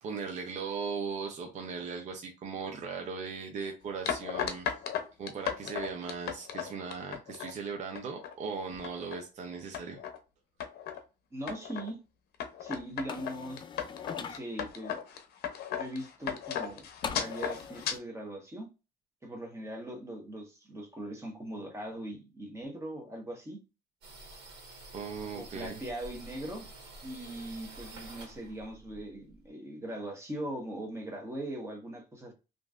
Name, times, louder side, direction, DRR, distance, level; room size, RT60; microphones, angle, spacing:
voice 1, 0.0-4.7 5.2-10.0 24.9-25.8, right 5 dB, 45° right, 3 dB, 0.6 m, -38 dB
sound 1, 4.1-7.5 8.0-8.3 8.7-9.2 9.7-10.2 10.6-11.0 11.5-11.9 12.4-18.0, left 8 dB, 70° left, 0.6 m, -36 dB
voice 2, 11.3-12.0 12.6-13.6 14.2-15.0 15.7-16.9 17.2-18.7 19.2-23.6 25.3-26.7 27.0-32.3, right 1 dB, 15° right, 1 dB, 1.1 m, -40 dB
sound 2, 13.1-14.4 17.0-18.0, left 6 dB, 30° left, 0.4 m, -41 dB
sound 3, 24.0-29.5, right 2 dB, 85° right, 1.3 m, -49 dB
2.9 x 2.6 x 2.4 m, 0.29 s
cardioid pair, 110°, 17 cm